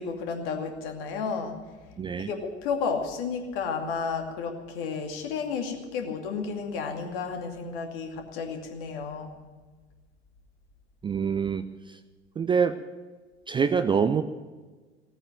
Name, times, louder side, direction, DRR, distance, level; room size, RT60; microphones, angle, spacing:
voice 1, 0.0-1.6 2.2-9.3, left 5 dB, 55° left, 3 dB, 2.6 m, -32 dB
voice 2, 2.0-2.3 11.0-12.0 12.4-12.8 13.5-14.2, right 6 dB, 15° right, 11 dB, 0.5 m, -25 dB
17.5 x 9.0 x 9.1 m, 1.3 s
figure-of-eight pair, 75°, 35 cm